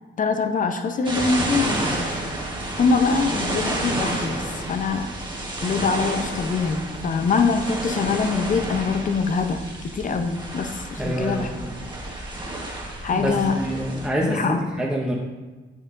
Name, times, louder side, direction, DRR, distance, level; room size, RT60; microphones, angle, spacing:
voice 1, 0.2-2.5 2.8-5.1 5.6-11.5 13.0-13.6 14.2-14.6, left 4 dB, 40° left, 7 dB, 0.7 m, -24 dB
sound 1, 1.0-14.1, right 1 dB, 20° right, 1.3 m, -30 dB
voice 2, 11.0-11.7 13.1-15.1, right 1 dB, 5° right, -3 dB, 0.8 m, -27 dB
8.2 x 6.9 x 2.6 m, 1.3 s
cardioid pair, 90°, 20 cm